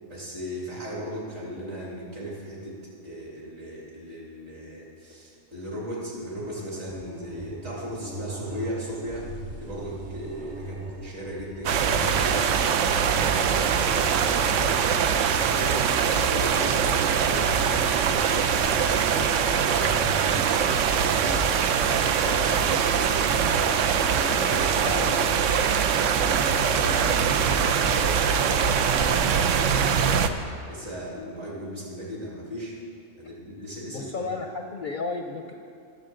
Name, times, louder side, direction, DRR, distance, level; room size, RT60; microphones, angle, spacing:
voice 1, 0.1-2.8 3.0-9.3 9.6-13.4 13.7-15.9 16.2-20.5 20.9-21.5 21.9-23.6 24.0-30.2 30.7-32.8 33.2-34.3, equal, 60° right, -5 dB, 3.0 m, -37 dB
sound 1, 6.3-25.3, right 2 dB, 40° right, 1.1 m, -39 dB
sound 2, 11.7-30.3, right 7 dB, 75° right, 0.9 m, -23 dB
voice 2, 24.8-25.5 33.9-35.5, left 3 dB, 55° left, 3 dB, 0.6 m, -33 dB
19.5 x 7.1 x 3.8 m, 2.3 s
omnidirectional pair, 1.3 m